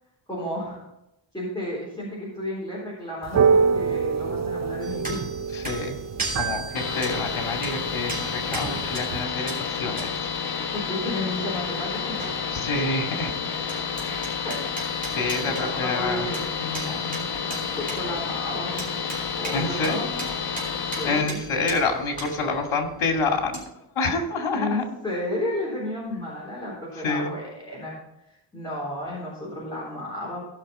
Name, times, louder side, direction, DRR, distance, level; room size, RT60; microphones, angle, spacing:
voice 1, 0.3-0.8 1.3-5.2 10.7-12.3 14.4-14.6 14.9-15.0 15.4-16.5 17.4-18.9 19.4-20.2 20.9-21.4 24.5-28.0 28.3-30.4, left 1 dB, 10° left, -8 dB, 3.8 m, -32 dB
sound 1, 3.2-9.2, right 5 dB, 35° right, 0.5 m, -26 dB
sound 2, 4.8-13.2 13.4-23.6, right 2 dB, 15° right, 3.3 m, -39 dB
voice 2, 5.5-6.0 6.3-10.3 12.5-13.4 14.0-14.4 15.1-16.3 16.6-17.2 19.5-20.1 20.5-20.6 21.1-23.6 24.0-24.8 27.0-27.3, left 3 dB, 75° left, 3 dB, 2.3 m, -28 dB
sound 3, 6.7-21.2, left 6 dB, 50° left, 1.2 m, -30 dB
16.5 x 5.9 x 4.2 m, 0.89 s
wide cardioid pair, 130°, 48 cm